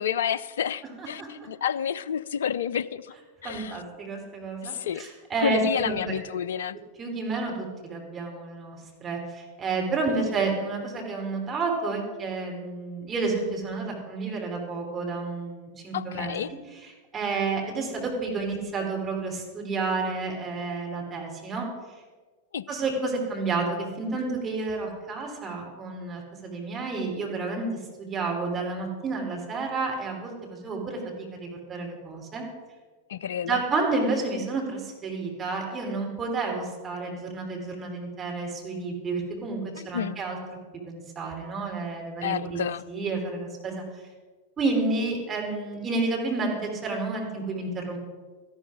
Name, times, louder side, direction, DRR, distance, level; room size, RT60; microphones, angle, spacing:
voice 1, 0.0-3.1 3.4-3.8 4.6-5.0 5.4-6.8 10.1-10.3 15.9-16.5 22.5-22.6 33.1-33.6 39.8-40.2 42.2-42.8, left 8 dB, 60° left, 18 dB, 0.4 m, -30 dB
voice 2, 3.4-6.2 7.0-16.3 17.1-21.7 22.7-27.7 28.0-32.4 33.4-39.6 39.8-40.4 40.8-42.6 42.9-43.8 44.6-48.0, right 3 dB, 20° right, 0 dB, 3.2 m, -30 dB
13.0 x 11.5 x 5.0 m, 1.3 s
figure-of-eight pair, 90°, 0 cm